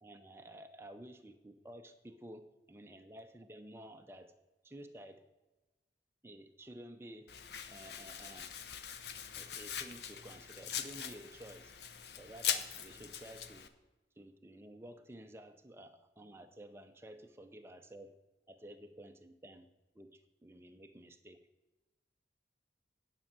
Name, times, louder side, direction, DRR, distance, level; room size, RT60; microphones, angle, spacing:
voice 1, 0.0-4.3 4.6-5.2 6.2-7.3 7.7-8.5 8.9-9.0 9.4-11.7 12.1-13.7 14.2-18.1 18.5-19.7 20.0-20.1 20.4-21.4, right 1 dB, 15° right, 6 dB, 0.6 m, -52 dB
Domestic sounds home sounds, 7.3-13.7, left 8 dB, 65° left, 0.7 m, -41 dB
10.0 x 5.5 x 7.4 m, 1.1 s
head